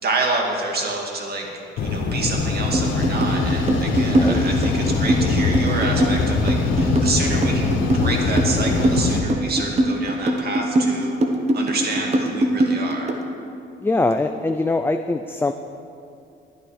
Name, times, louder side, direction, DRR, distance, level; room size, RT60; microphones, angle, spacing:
voice 1, 0.0-1.5 1.8-11.2 11.5-13.2, right 3 dB, 55° right, 0 dB, 2.1 m, -28 dB
sound 1, 1.8-9.2, left 4 dB, 80° left, 1.4 m, -22 dB
sound 2, 2.7-13.2, right 1 dB, 35° right, 1.2 m, -21 dB
Acoustic guitar / Strum, 3.2-6.5, right 3 dB, 80° right, 2.8 m, -41 dB
voice 2, 4.1-4.4 13.8-15.5, left 2 dB, 10° left, 7 dB, 0.4 m, -22 dB
11.0 x 10.5 x 4.9 m, 2.5 s
cardioid pair, 90°, 20 cm